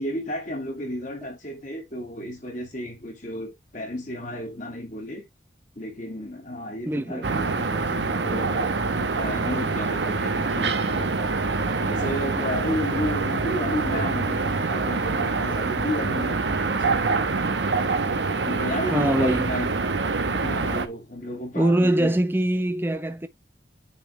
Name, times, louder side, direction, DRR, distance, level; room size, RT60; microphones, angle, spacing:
voice 1, 0.0-5.2 5.8-11.1 11.8-17.2 18.4-19.8 20.3-22.2, left 1 dB, 45° left, 2.3 m, -33 dB
voice 2, 6.9-7.3 18.9-19.5 21.5-23.3, right 1 dB, 10° right, 0.7 m, -23 dB
sound 1, 7.2-20.9, right 3 dB, 80° right, 1.0 m, -25 dB
9.6 x 3.5 x 3.1 m
head